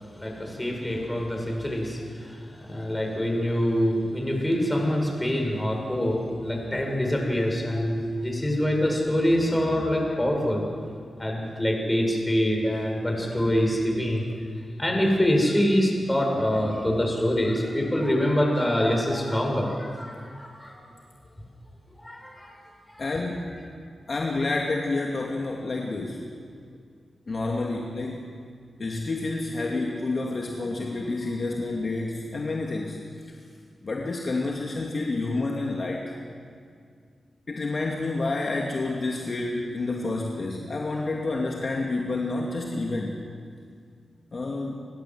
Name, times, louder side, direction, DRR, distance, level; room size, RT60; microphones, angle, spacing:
voice 1, 0.2-10.7 11.2-14.3 14.8-20.8 22.0-22.5 22.9-23.1, equal, 15° left, 1 dB, 7.9 m, -25 dB
voice 2, 23.0-23.6 24.1-26.3 27.3-28.3 28.8-33.0 33.8-36.1 37.5-43.2 44.3-44.8, left 2 dB, 55° left, -1 dB, 2.6 m, -29 dB
30.0 x 16.0 x 8.1 m, 2.2 s
cardioid pair, 55°, 0 cm